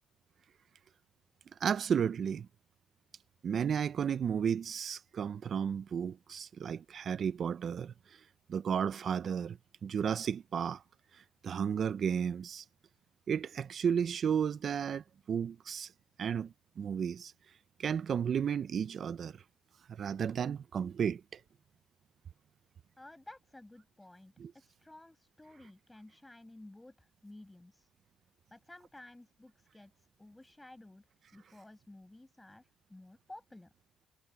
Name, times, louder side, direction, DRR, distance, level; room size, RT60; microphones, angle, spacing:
voice 1, 1.6-2.5 3.4-7.9 8.5-10.8 11.1-12.6 13.3-15.9 16.2-17.3 17.8-19.4 19.9-21.4 24.4-24.5, right 7 dB, 45° right, 0.6 m, -33 dB
voice 2, 23.0-27.9 28.5-31.1 31.3-33.7, left 1 dB, 10° left, 7.1 m, -54 dB
cardioid pair, 105°, 0 cm